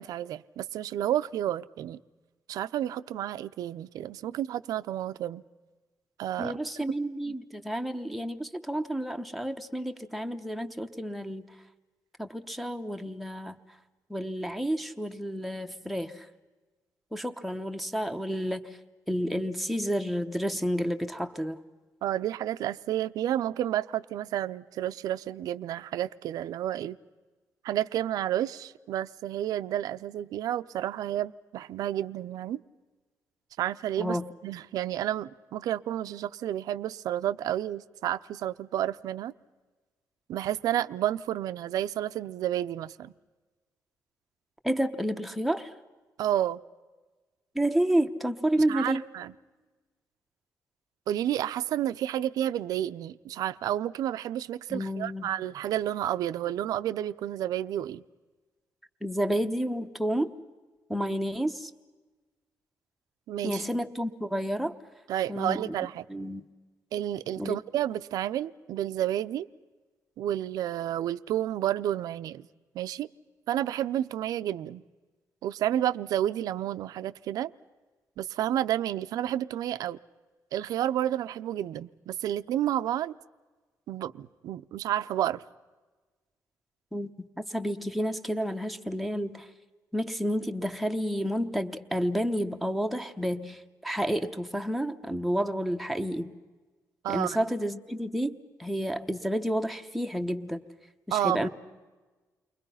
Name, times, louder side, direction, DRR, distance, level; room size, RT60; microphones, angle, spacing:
voice 1, 0.0-2.0 2.5-5.4 6.2-6.6 7.3-7.4 22.0-27.0 27.6-32.6 33.6-34.2 34.4-39.3 40.3-43.1 46.2-46.6 48.7-49.3 51.1-58.0 63.3-63.6 65.1-66.0 66.9-69.5 70.2-72.5 72.7-73.1 73.5-74.8 75.4-77.5 78.2-80.0 80.5-83.1 83.9-85.4 97.0-97.4 101.1-101.5, right 12 dB, 75° right, 0.6 m, -30 dB
voice 2, 6.4-11.5 12.2-13.6 14.1-16.3 17.1-18.8 19.1-21.6 34.0-34.3 44.6-45.7 47.5-49.0 54.7-55.3 59.0-60.3 60.9-61.7 63.4-64.7 65.3-65.7 66.1-66.4 67.4-67.6 86.9-89.5 89.9-96.3 97.1-100.6 101.1-101.5, equal, ahead, 0.9 m, -30 dB
29.5 x 23.0 x 5.7 m
cardioid pair, 180°, 6 cm